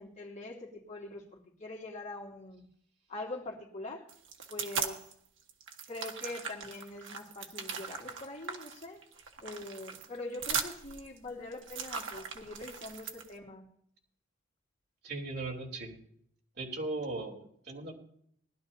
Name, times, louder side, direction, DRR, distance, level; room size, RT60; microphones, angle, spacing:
voice 1, 0.0-2.7 3.1-4.1 4.5-5.0 5.9-9.0 9.4-13.7, left 2 dB, 40° left, -3 dB, 2.8 m, -43 dB
sound 1, 4.1-5.1 5.5-13.3, right 6 dB, 80° right, 1.5 m, -39 dB
voice 2, 15.0-16.0 16.6-17.9, right 2 dB, 60° right, 0 dB, 3.4 m, -38 dB
20.0 x 12.0 x 2.8 m, 0.65 s
head